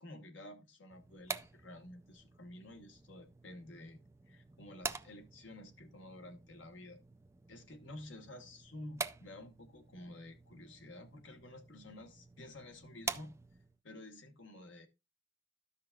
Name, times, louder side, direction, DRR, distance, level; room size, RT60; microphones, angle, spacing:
voice 1, 0.0-7.0 7.5-13.4 13.8-14.9, left 1 dB, 80° left, 1.4 m, -51 dB
sound 1, 0.9-13.8, right 4 dB, 15° right, 0.3 m, -47 dB
13.5 x 5.7 x 2.4 m
head